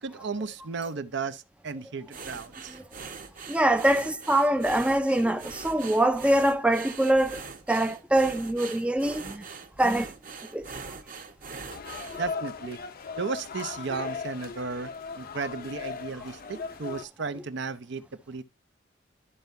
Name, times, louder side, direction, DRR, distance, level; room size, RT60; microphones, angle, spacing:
voice 1, 0.0-2.7 12.2-12.8 13.2-14.9 15.2-18.4, right 4 dB, 65° right, 0.7 m, -34 dB
sound 1, 2.1-12.3, right 5 dB, 45° right, 1.1 m, -42 dB
voice 2, 3.5-7.4 7.7-9.4 9.8-10.1 10.5-10.7, right 1 dB, 5° right, 0.4 m, -24 dB
sound 2, 11.7-17.0, left 5 dB, 50° left, 0.6 m, -38 dB
12.5 x 4.5 x 2.6 m
head